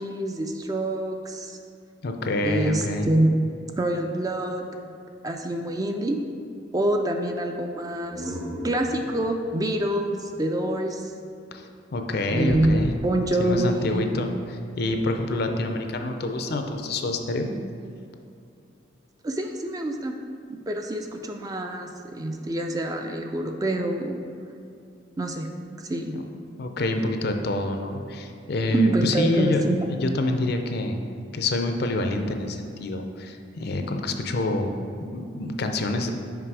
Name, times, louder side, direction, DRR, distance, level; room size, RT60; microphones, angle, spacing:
voice 1, 0.0-1.6 2.4-3.5 3.8-4.7 5.2-6.2 6.7-8.4 8.6-11.1 12.3-12.8 13.0-14.1 19.2-20.1 20.5-24.3 25.2-25.5 25.9-26.2 28.7-29.8, right 1 dB, 20° right, 4 dB, 0.4 m, -26 dB
voice 2, 2.0-3.1 11.5-11.6 11.9-12.9 13.4-14.3 14.8-17.5 26.1-26.3 26.6-31.0 31.3-34.7 35.0-36.1, left 2 dB, 55° left, 5 dB, 0.5 m, -27 dB
sound 1, 7.9-11.5, equal, 80° right, 1.3 m, -39 dB
Gunshot gunfire / Fireworks / Boom, 12.5-17.3, equal, 55° right, 1.0 m, -40 dB
6.0 x 4.9 x 4.7 m, 2.4 s
head